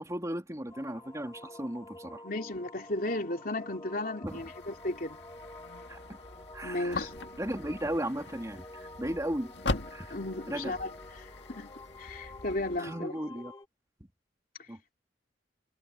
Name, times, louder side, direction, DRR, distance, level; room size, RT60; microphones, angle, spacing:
voice 1, 0.0-2.2 4.2-4.5 5.9-6.2 6.5-7.1 7.4-9.5 9.9-10.2 10.5-10.8 12.8-13.5 14.7-14.9, right 1 dB, 20° right, 3.0 m, -36 dB
sound 1, 0.7-13.7, left 2 dB, 20° left, 2.4 m, -49 dB
voice 2, 2.2-5.2 6.6-7.1 10.1-10.9 11.5-11.7 12.0-13.2, left 2 dB, 50° left, 3.3 m, -34 dB
sound 2, 4.3-12.8, left 2 dB, 75° left, 2.0 m, -41 dB
head